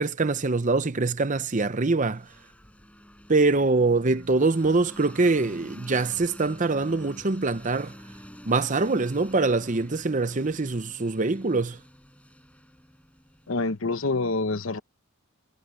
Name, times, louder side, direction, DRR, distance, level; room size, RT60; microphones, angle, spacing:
voice 1, 0.0-2.3 3.3-7.9 8.5-11.8, right 3 dB, 35° right, 0.8 m, -24 dB
sound 1, 2.1-13.9, equal, 5° left, 6.7 m, -48 dB
voice 2, 13.5-14.8, left 3 dB, 60° left, 0.9 m, -26 dB
head